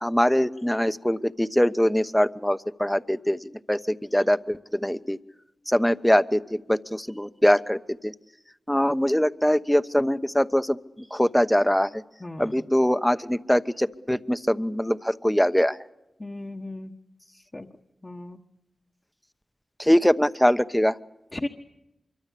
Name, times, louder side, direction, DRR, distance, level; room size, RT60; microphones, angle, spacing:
voice 1, 0.0-5.2 5.7-8.1 8.7-10.8 11.1-12.0 12.4-15.8 19.8-20.9, equal, 5° left, 12 dB, 1.0 m, -23 dB
voice 2, 12.2-12.6 16.2-16.9 17.5-17.7 18.0-18.4 21.3-21.5, left 2 dB, 30° left, 0 dB, 1.4 m, -35 dB
25.0 x 23.5 x 8.5 m, 0.93 s
cardioid pair, 45°, 0 cm